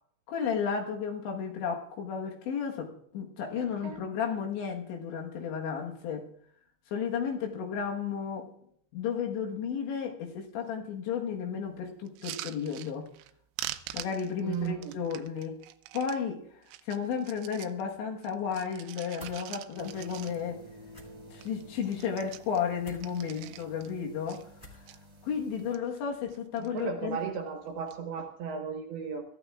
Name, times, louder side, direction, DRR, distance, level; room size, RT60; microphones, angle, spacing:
voice 1, 0.3-6.3 6.9-8.5 8.9-13.1 13.9-15.6 15.9-16.4 16.9-20.6 21.3-24.5 25.2-27.2, left 7 dB, 70° left, 1 dB, 3.4 m, -33 dB
voice 2, 3.6-4.0 14.4-15.0 26.6-29.2, right 6 dB, 65° right, 3 dB, 2.7 m, -35 dB
sound 1, 12.1-13.3 13.6-16.2 16.6-17.8 18.2-20.7 21.0-21.1 21.3-21.6 21.9-23.9 24.3-25.0 25.5-26.0 26.3-26.8 27.7-28.0, right 15 dB, 85° right, 3.4 m, -44 dB
sound 2, 19.2-19.4 20.9-21.1 22.8-23.0 24.6-24.9, left 1 dB, 45° left, 0.5 m, -49 dB
sound 3, 19.7-25.8, equal, 25° right, 1.9 m, -52 dB
24.0 x 14.0 x 2.4 m, 0.67 s
omnidirectional pair, 5.9 m